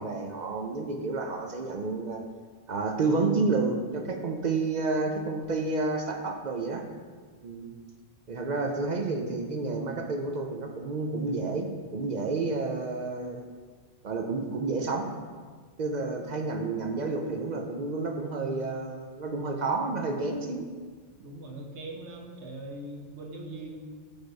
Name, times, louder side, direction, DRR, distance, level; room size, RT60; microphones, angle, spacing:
voice 1, 0.0-2.2 2.7-6.8 7.4-7.7 8.3-13.4 14.0-15.1 15.8-20.6, right 3 dB, 50° right, 3 dB, 0.6 m, -30 dB
voice 2, 21.2-23.8, right 1 dB, 80° right, 1 dB, 1.2 m, -41 dB
8.0 x 3.5 x 4.0 m, 1.5 s
omnidirectional pair, 1.1 m